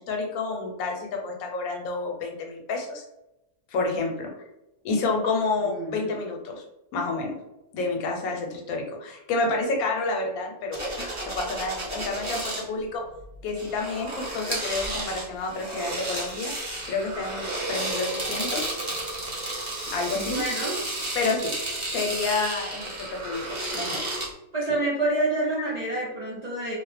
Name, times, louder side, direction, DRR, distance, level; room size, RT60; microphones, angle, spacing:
voice 1, 0.0-3.0 3.7-4.3 4.8-6.6 6.9-7.4 7.7-13.0 13.4-16.5 16.9-18.8 19.9-20.4 21.1-21.5 21.9-24.1, left 3 dB, 80° left, 1 dB, 1.1 m, -29 dB
voice 2, 5.6-6.1 20.1-20.7 24.5-26.8, right 2 dB, 75° right, -5 dB, 0.3 m, -28 dB
sound 1, 10.7-12.6 13.5-24.3, right 2 dB, 30° right, 0.6 m, -32 dB
2.5 x 2.0 x 3.2 m, 0.93 s
omnidirectional pair, 1.5 m